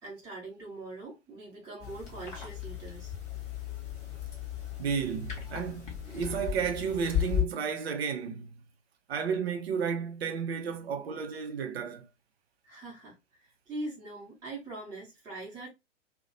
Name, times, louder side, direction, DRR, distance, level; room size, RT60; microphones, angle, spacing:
voice 1, 0.0-3.2 12.6-15.7, right 2 dB, 10° right, 0.9 m, -42 dB
sound 1, 1.8-7.4, left 10 dB, 20° left, 0.9 m, -35 dB
voice 2, 4.8-8.5 9.1-12.1, right 6 dB, 55° right, 0.6 m, -32 dB
2.7 x 2.2 x 2.7 m
figure-of-eight pair, 110°, 37 cm